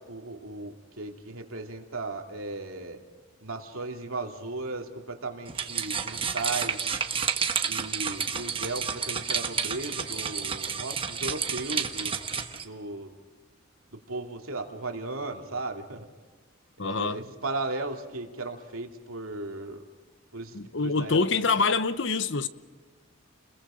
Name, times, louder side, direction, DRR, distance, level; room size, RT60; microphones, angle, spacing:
voice 1, 0.1-3.0 3.4-6.9 7.7-12.1 12.6-13.1 14.1-16.1 16.8-19.9 20.3-21.4, right 2 dB, 85° right, 2.7 m, -36 dB
sound 1, 5.5-12.6, right 6 dB, 25° right, 1.2 m, -30 dB
voice 2, 16.8-17.2 20.5-22.5, left 4 dB, 60° left, 0.9 m, -25 dB
29.5 x 21.5 x 5.1 m
head